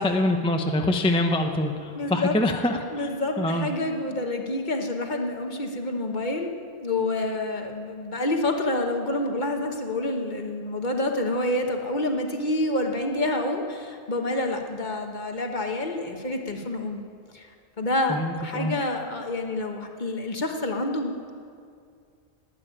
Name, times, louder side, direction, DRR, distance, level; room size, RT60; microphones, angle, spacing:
voice 1, 0.0-3.1 3.4-3.7 18.1-18.7, left 1 dB, 5° left, 4 dB, 0.6 m, -25 dB
voice 2, 1.9-2.4 2.9-6.5 6.8-17.0 17.3-17.5 17.8-21.3, left 2 dB, 45° left, 3 dB, 1.3 m, -28 dB
12.0 x 9.2 x 10.0 m, 2.3 s
omnidirectional pair, 1.1 m